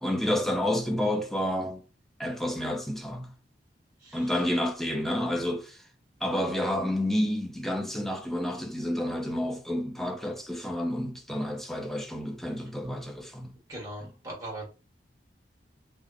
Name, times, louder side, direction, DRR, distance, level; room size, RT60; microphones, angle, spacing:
voice 1, 0.0-1.8 2.2-3.3 4.1-5.8 6.2-13.5 14.0-14.1, left 1 dB, ahead, 0.5 m, -30 dB
voice 2, 13.7-14.6, right 1 dB, 20° right, 1.2 m, -39 dB
3.4 x 2.1 x 3.6 m
head